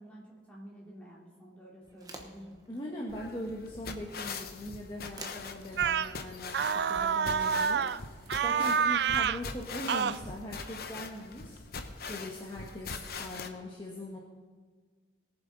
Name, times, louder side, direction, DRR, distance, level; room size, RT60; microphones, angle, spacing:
voice 1, 0.0-2.8, equal, 5° left, -5 dB, 2.8 m, -50 dB
sound 1, 1.8-8.2, right 2 dB, 20° right, 1.1 m, -54 dB
voice 2, 2.7-14.2, left 1 dB, 25° left, -3 dB, 1.3 m, -41 dB
sound 2, 3.1-13.5, left 4 dB, 55° left, 0.8 m, -42 dB
sound 3, 5.8-6.1 6.5-8.0 8.3-9.4 9.9-10.2, right 7 dB, 60° right, 0.3 m, -28 dB
19.5 x 7.2 x 4.0 m, 1.5 s
head